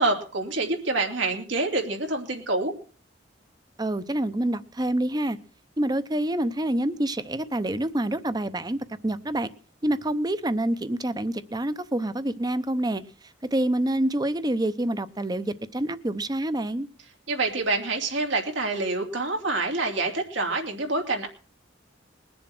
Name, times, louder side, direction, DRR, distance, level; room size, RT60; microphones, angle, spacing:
voice 1, 0.0-2.7 17.3-21.3, right 3 dB, 90° right, 1 dB, 3.0 m, -26 dB
voice 2, 3.8-5.4 5.8-9.5 9.8-16.9, right 1 dB, 20° right, 14 dB, 0.7 m, -27 dB
21.0 x 7.3 x 6.1 m, 0.39 s
head